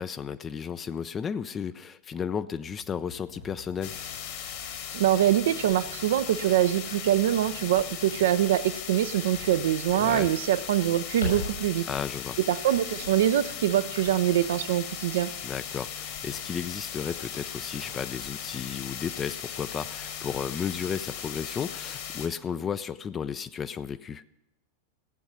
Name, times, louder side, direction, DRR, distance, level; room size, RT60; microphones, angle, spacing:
voice 1, 0.0-3.9 9.9-10.3 11.9-12.4 15.4-24.2, left 7 dB, 25° left, 13 dB, 0.4 m, -33 dB
sound 1, 2.5-21.6, left 3 dB, 90° left, 5.0 m, -46 dB
sound 2, 3.8-22.3, left 8 dB, 50° left, 1.8 m, -38 dB
voice 2, 4.9-11.8 12.5-15.3, right 12 dB, 60° right, 12 dB, 0.5 m, -24 dB
15.5 x 8.1 x 6.1 m, 0.91 s
figure-of-eight pair, 90°, 0 cm